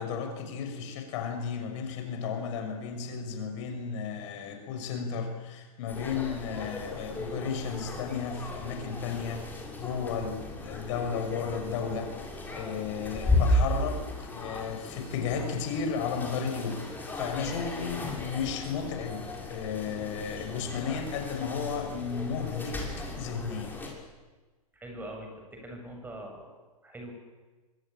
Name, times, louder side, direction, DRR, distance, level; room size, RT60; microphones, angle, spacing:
voice 1, 0.0-12.1 12.5-22.8 23.2-23.8, left 6 dB, 50° left, 5 dB, 5.9 m, -34 dB
sound 1, 5.9-23.9, left 1 dB, 10° left, 6.9 m, -35 dB
voice 2, 24.7-26.5 26.8-27.1, right 1 dB, 10° right, 2 dB, 8.0 m, -42 dB
26.0 x 24.0 x 8.9 m, 1.3 s
hypercardioid pair, 110°, 19 cm